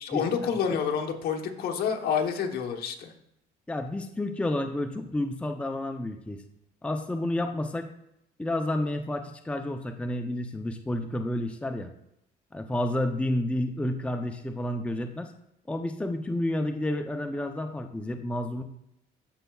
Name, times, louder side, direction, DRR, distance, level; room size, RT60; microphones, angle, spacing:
voice 1, 0.0-3.1, left 7 dB, 65° left, 3 dB, 1.0 m, -28 dB
voice 2, 3.7-6.4 6.8-7.9 8.4-11.9 12.5-15.3 15.7-18.6, left 1 dB, 5° left, 5 dB, 0.5 m, -30 dB
13.5 x 5.5 x 2.3 m, 0.78 s
cardioid pair, 110°, 17 cm